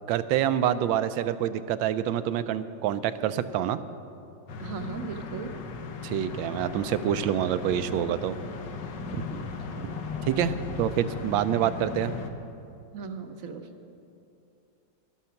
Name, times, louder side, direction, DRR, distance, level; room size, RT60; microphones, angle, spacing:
voice 1, 0.1-3.8 6.0-8.3 9.1-9.2 10.3-12.1, right 10 dB, 90° right, 12 dB, 1.3 m, -27 dB
sound 1, 4.5-12.3, left 4 dB, 70° left, 1.5 m, -37 dB
voice 2, 4.6-5.5 9.3-9.9 12.9-13.7, right 5 dB, 60° right, 6 dB, 1.0 m, -38 dB
12.0 x 12.0 x 5.8 m, 2.6 s
omnidirectional pair, 2.0 m